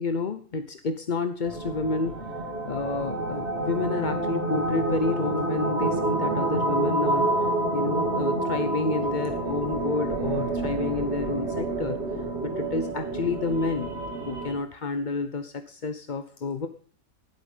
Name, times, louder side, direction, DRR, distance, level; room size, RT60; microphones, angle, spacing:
voice 1, 0.0-2.2 2.6-13.9 14.3-16.7, left 4 dB, 35° left, 8 dB, 0.8 m, -30 dB
sound 1, 1.4-14.6, right 2 dB, 40° right, 3.3 m, -28 dB
15.5 x 12.0 x 5.5 m, 0.44 s
omnidirectional pair, 1.7 m